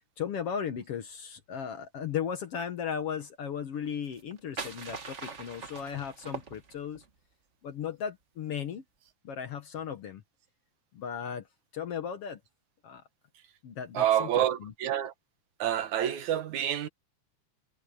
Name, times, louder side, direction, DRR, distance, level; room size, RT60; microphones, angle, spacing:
voice 1, 0.2-7.0 7.6-8.8 9.2-10.2 10.9-11.5 11.7-12.4 12.8-13.0 13.6-14.7, left 8 dB, 55° left, 1.9 m, -36 dB
sound 1, 4.0-7.1, right 5 dB, 40° right, 1.1 m, -42 dB
voice 2, 13.9-15.1 15.6-16.9, right 11 dB, 70° right, 2.5 m, -28 dB
omnidirectional pair, 3.6 m